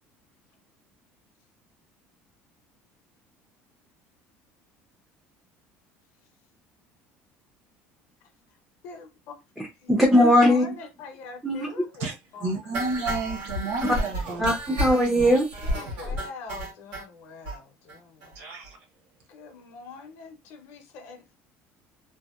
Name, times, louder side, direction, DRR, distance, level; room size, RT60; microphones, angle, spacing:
voice 1, 8.8-9.4 9.8-12.7 15.6-18.5 19.3-21.3, left 4 dB, 60° left, 0.6 m, -43 dB
voice 2, 9.9-10.7 11.4-11.7 14.4-15.7, equal, 5° right, 0.3 m, -19 dB
voice 3, 12.4-14.5 18.4-18.8, right 3 dB, 55° right, 0.7 m, -31 dB
sound 1, 12.7-17.0 17.5-17.6 17.9-18.0 18.2-18.3 18.7-18.8, equal, 85° right, 1.3 m, -31 dB
2.7 x 2.1 x 2.3 m
cardioid pair, 175°, 5 cm